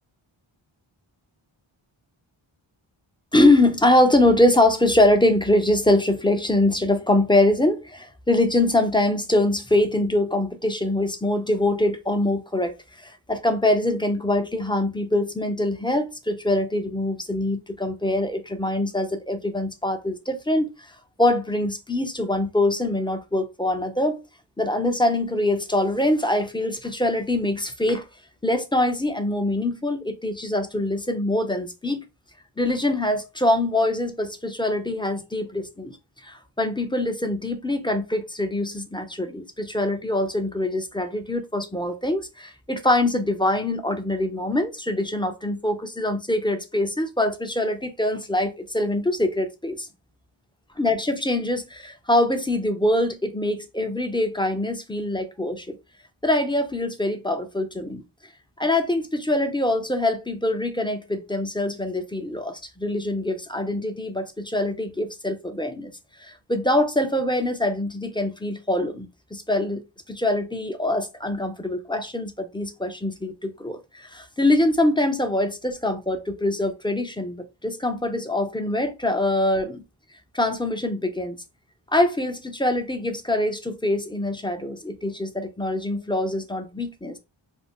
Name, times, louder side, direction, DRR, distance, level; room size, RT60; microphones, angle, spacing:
voice 1, 3.3-20.9 21.2-24.2 24.6-28.1 28.4-32.0 32.6-36.0 36.2-49.9 50.8-55.8 56.2-58.0 58.6-65.9 66.2-69.8 70.1-79.8 80.3-81.4 81.9-87.2, left 1 dB, 10° left, 0.4 m, -23 dB
2.5 x 2.0 x 3.5 m
wide cardioid pair, 60°, 49 cm